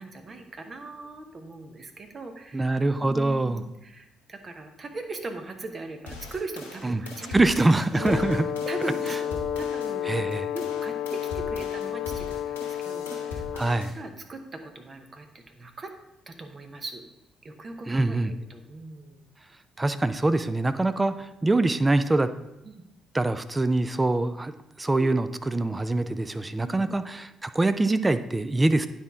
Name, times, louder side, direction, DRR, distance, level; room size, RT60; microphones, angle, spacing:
voice 1, 0.0-2.7 3.0-7.4 7.9-8.3 8.7-10.2 10.5-13.4 13.9-15.9 16.3-17.0 17.4-19.3 22.6-22.8 25.0-25.1 26.6-27.0, right 2 dB, 40° right, 6 dB, 1.0 m, -40 dB
voice 2, 2.5-3.6 6.8-7.0 7.3-8.4 10.1-10.5 13.5-13.9 17.9-18.3 19.8-22.3 23.1-24.5 24.8-28.9, right 2 dB, 20° right, 12 dB, 0.5 m, -24 dB
sound 1, 6.1-9.9 10.3-13.9, left 3 dB, 90° left, 1.0 m, -40 dB
Brass instrument, 7.9-13.9, left 9 dB, 65° left, 0.3 m, -31 dB
9.5 x 4.4 x 3.6 m, 0.90 s
hypercardioid pair, 45°, 0 cm